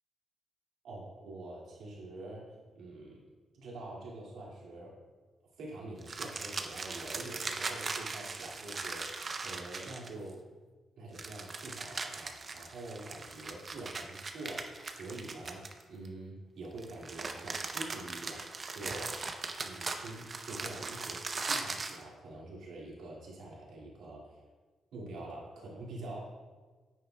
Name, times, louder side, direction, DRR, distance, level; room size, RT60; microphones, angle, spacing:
voice 1, 0.8-5.0 5.6-10.4 11.0-19.1 19.6-24.4 24.9-26.2, right 2 dB, 80° right, -4 dB, 2.2 m, -45 dB
sound 1, 6.0-10.3 11.1-16.1 16.8-22.0, right 4 dB, 40° right, 0.6 m, -39 dB
9.7 x 7.4 x 2.3 m, 1.3 s
cardioid pair, 95°, 0 cm